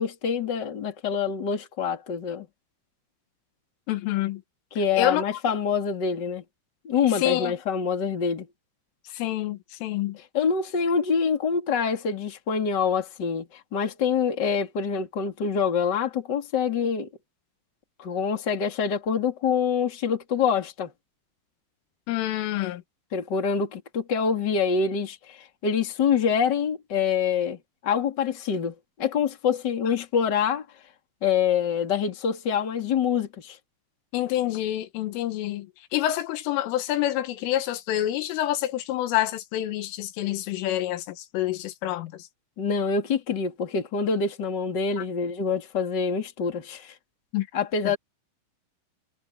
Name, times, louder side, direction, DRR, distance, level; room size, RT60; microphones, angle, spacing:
voice 1, 0.0-2.5 4.7-6.4 6.8-8.5 10.3-17.1 18.0-20.9 23.1-30.6 31.2-33.6 42.6-46.9 47.5-48.0, left 6 dB, 30° left, 2.5 m, -26 dB
voice 2, 3.9-4.4 5.0-5.2 7.1-7.5 9.1-10.2 22.1-22.8 34.1-42.3 45.0-45.1 47.3-47.5 47.9-48.0, left 13 dB, 90° left, 4.0 m, -27 dB
omnidirectional pair, 5.6 m